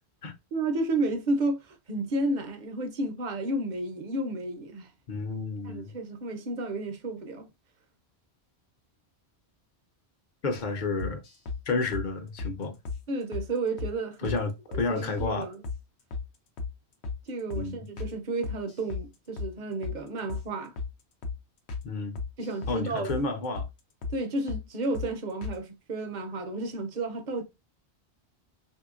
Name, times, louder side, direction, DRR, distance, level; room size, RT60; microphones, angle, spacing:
voice 1, 0.5-4.9 5.6-7.5 13.1-14.4 14.7-15.6 17.3-20.7 22.4-23.1 24.1-27.4, right 2 dB, 50° right, 0.7 m, -32 dB
voice 2, 5.1-5.9 10.4-11.2 11.7-12.8 14.2-15.5 17.5-17.8 21.8-22.2 22.7-23.7, left 3 dB, 50° left, 0.8 m, -31 dB
sound 1, 11.0-11.6 11.9-12.1 12.4-12.5 12.9-13.0 13.3-13.5 13.8-13.9 14.2-14.4 14.7-15.3 15.6-15.8 16.1-16.3 16.6-16.7 17.0-17.2 17.5-17.7 18.0-18.1 18.4-19.1 19.4-19.5 19.8-20.0 20.3-20.5 20.8-20.9 21.2-21.4 21.7-21.9 22.2-22.8 23.1-23.2 23.5-23.7 24.0-24.2 24.5-24.6 24.9-25.1 25.4-25.6, left 4 dB, 85° left, 1.0 m, -34 dB
3.2 x 2.8 x 2.4 m
omnidirectional pair, 1.1 m